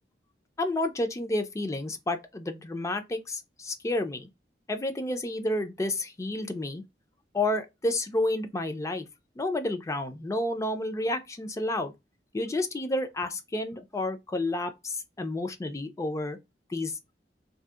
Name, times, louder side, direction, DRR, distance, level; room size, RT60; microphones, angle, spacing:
voice 1, 0.6-4.3 4.7-6.8 7.3-9.1 9.4-11.9 12.3-16.4 16.7-17.0, left 1 dB, 20° left, 0.3 m, -30 dB
2.7 x 2.0 x 2.3 m
head